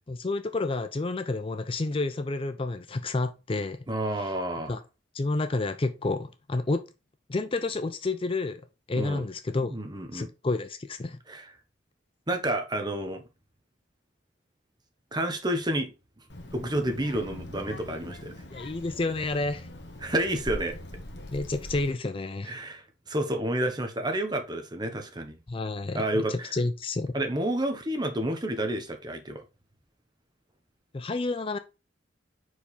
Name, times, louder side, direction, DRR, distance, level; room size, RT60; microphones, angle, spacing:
voice 1, 0.1-3.8 4.2-4.3 4.7-4.8 5.1-6.8 7.3-8.6 8.9-9.7 10.1-11.2 18.5-19.7 21.3-22.6 25.5-26.0 26.3-27.1 30.9-31.6, left 3 dB, 30° left, 0.4 m, -30 dB
voice 2, 3.9-4.8 8.9-9.2 9.6-10.3 11.3-11.5 12.3-13.2 15.1-15.9 16.5-18.3 20.0-20.7 22.4-25.4 25.9-26.5 27.1-29.4, right 1 dB, 25° right, 1.2 m, -30 dB
Child speech kid speaking, 16.3-21.9, left 1 dB, 65° left, 1.4 m, -42 dB
5.2 x 4.8 x 4.1 m
head